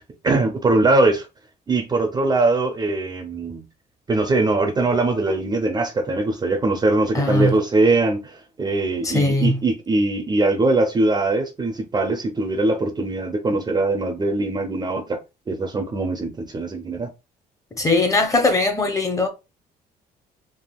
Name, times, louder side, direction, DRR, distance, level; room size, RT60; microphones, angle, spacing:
voice 1, 0.2-1.3 1.7-3.6 4.1-15.2 15.5-17.1, right 2 dB, 25° right, 0.5 m, -21 dB
voice 2, 7.1-7.5 9.0-9.6 17.8-19.3, left 2 dB, 20° left, 0.7 m, -20 dB
3.5 x 2.4 x 2.3 m
cardioid pair, 110°, 17 cm